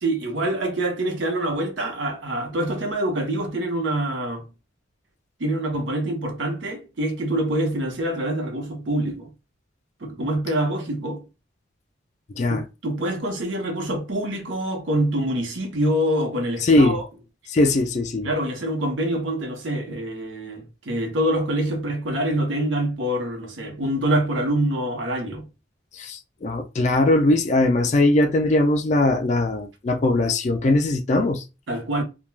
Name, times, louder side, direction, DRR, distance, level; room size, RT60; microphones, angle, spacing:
voice 1, 0.0-4.5 5.4-9.3 10.0-11.2 12.5-17.0 18.2-25.5 31.7-32.0, right 1 dB, 75° right, 0.8 m, -25 dB
voice 2, 16.6-17.0 17.5-18.3 26.0-31.4, left 2 dB, 40° left, 0.3 m, -20 dB
2.2 x 2.2 x 3.1 m
head